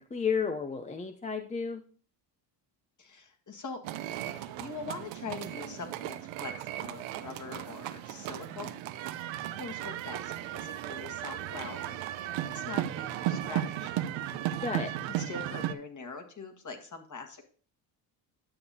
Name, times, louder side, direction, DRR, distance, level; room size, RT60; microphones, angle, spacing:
voice 1, 0.0-1.8 14.6-15.0, left 5 dB, 15° left, 7 dB, 0.5 m, -32 dB
voice 2, 3.0-3.8 4.3-8.7 9.6-12.0 12.5-13.9 15.2-17.4, left 4 dB, 35° left, 4 dB, 1.7 m, -43 dB
sound 1, 3.8-15.7, right 12 dB, 65° right, 0.7 m, -35 dB
9.9 x 6.8 x 2.8 m, 0.42 s
supercardioid pair, 65°, 50 cm